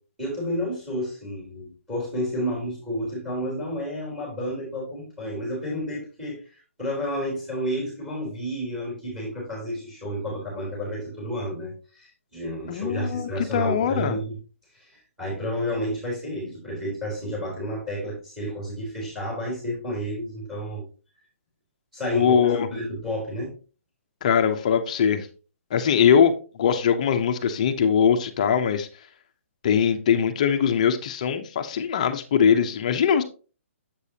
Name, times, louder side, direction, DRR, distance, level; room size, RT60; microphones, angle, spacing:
voice 1, 0.2-6.4 6.8-14.4 14.7-20.8 21.9-23.5, equal, 5° right, 3.5 m, -31 dB
voice 2, 12.7-14.2 22.1-22.7 24.2-25.3 25.7-26.3 26.6-28.9 29.6-33.2, left 7 dB, 30° left, 0.7 m, -21 dB
7.5 x 6.7 x 2.8 m
hypercardioid pair, 175°, 8 cm